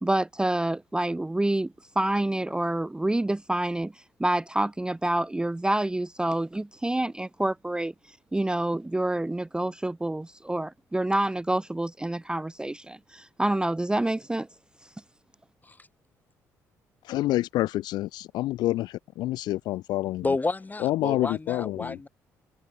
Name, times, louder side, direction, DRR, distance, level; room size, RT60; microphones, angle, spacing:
voice 1, 0.0-3.9 4.2-14.5, right 1 dB, 10° right, 0.5 m, -27 dB
voice 2, 17.1-20.2 20.8-22.0, left 16 dB, 70° left, 0.4 m, -28 dB
voice 3, 20.2-22.1, left 3 dB, 20° left, 1.7 m, -30 dB
open air
hypercardioid pair, 50°, 8 cm